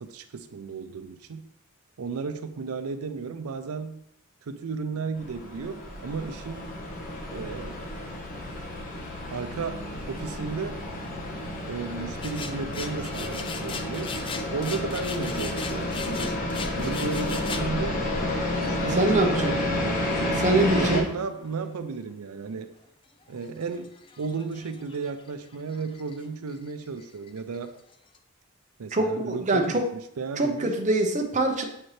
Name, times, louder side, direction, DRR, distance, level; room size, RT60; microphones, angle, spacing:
voice 1, 0.0-1.5 2.0-4.0 4.5-6.6 7.3-7.8 9.3-10.8 11.7-14.1 14.5-16.4 16.8-18.0 18.5-22.7 23.3-27.7 28.8-30.7, right 4 dB, 90° right, 9 dB, 0.5 m, -34 dB
sound 1, 5.2-21.0, left 1 dB, 40° left, 1.2 m, -31 dB
sound 2, 12.2-17.7 18.4-18.7 20.1-20.8 21.1-21.6 22.1-22.2 22.5-22.6 23.2-26.2 26.5-28.2, left 5 dB, 25° left, 0.4 m, -40 dB
voice 2, 19.0-19.6 20.2-21.1 28.9-29.9 30.4-31.6, right 2 dB, 35° right, 4 dB, 0.8 m, -24 dB
7.5 x 4.3 x 3.2 m, 0.73 s
head